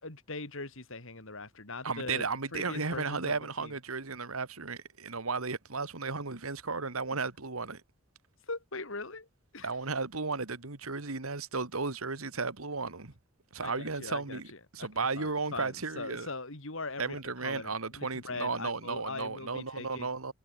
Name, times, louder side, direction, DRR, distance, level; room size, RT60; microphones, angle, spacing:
voice 1, 0.0-2.2 2.5-3.3 3.6-3.7 8.5-9.3 9.5-9.7 13.6-14.9 15.2-20.1, left 3 dB, 65° left, 3.9 m, -41 dB
voice 2, 1.8-7.8 9.6-13.1 13.5-14.5 14.7-16.3 17.0-20.3, right 4 dB, 85° right, 1.9 m, -34 dB
head